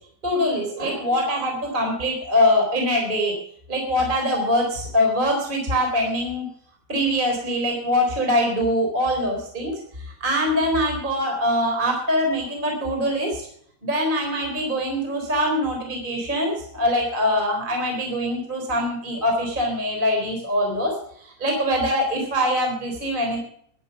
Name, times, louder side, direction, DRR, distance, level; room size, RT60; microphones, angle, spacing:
voice 1, 0.2-3.3 3.7-6.5 6.9-9.8 10.2-13.5 13.8-23.5, equal, 15° right, 1 dB, 3.6 m, -23 dB
12.0 x 11.0 x 6.9 m, 0.62 s
omnidirectional pair, 4.6 m